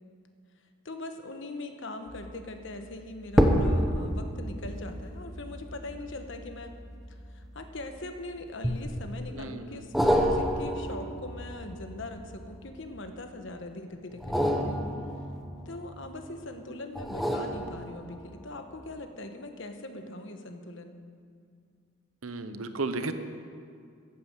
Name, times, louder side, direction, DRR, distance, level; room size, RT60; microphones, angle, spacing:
voice 1, 0.8-6.7 7.1-14.8 15.6-21.0, left 2 dB, 60° left, 6 dB, 1.2 m, -41 dB
sound 1, 2.1-2.4 3.3-7.9 8.6-9.3 9.9-12.9 14.1-16.2 16.9-18.4 18.8-18.9, equal, ahead, 1.0 m, -29 dB
voice 2, 9.3-9.8 22.2-23.1, right 3 dB, 75° right, 10 dB, 0.9 m, -34 dB
14.5 x 9.2 x 7.5 m, 2.2 s
head